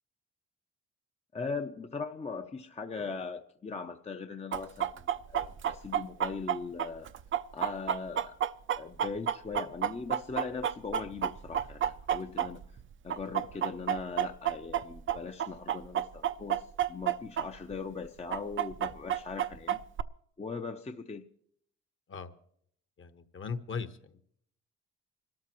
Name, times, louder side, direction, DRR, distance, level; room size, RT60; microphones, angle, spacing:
voice 1, 1.3-7.1 7.5-8.4 8.7-12.7 13.0-19.8 20.4-21.3, left 4 dB, 20° left, 5 dB, 0.7 m, -39 dB
Chicken rooster, 4.5-12.8 13.1-17.5 17.7-17.8 18.3-20.0, right 10 dB, 40° right, 0.5 m, -30 dB
voice 2, 23.0-24.2, left 5 dB, 40° left, 10 dB, 1.2 m, -39 dB
26.5 x 13.0 x 3.0 m, 0.67 s
cardioid pair, 90°, 30 cm